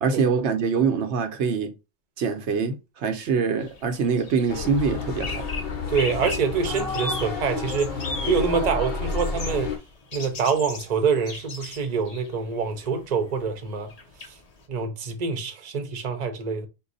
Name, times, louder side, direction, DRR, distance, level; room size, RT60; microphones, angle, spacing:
voice 1, 0.0-1.7 2.2-5.4, right 5 dB, 85° right, 1.0 m, -24 dB
sound 1, 3.6-14.7, left 3 dB, 40° left, 0.8 m, -39 dB
sound 2, 4.5-9.8, left 3 dB, 60° left, 1.1 m, -30 dB
voice 2, 5.9-7.9 8.3-9.7 10.1-13.9 14.7-16.7, right 5 dB, 45° right, 0.8 m, -25 dB
4.6 x 2.2 x 3.9 m
omnidirectional pair, 1.1 m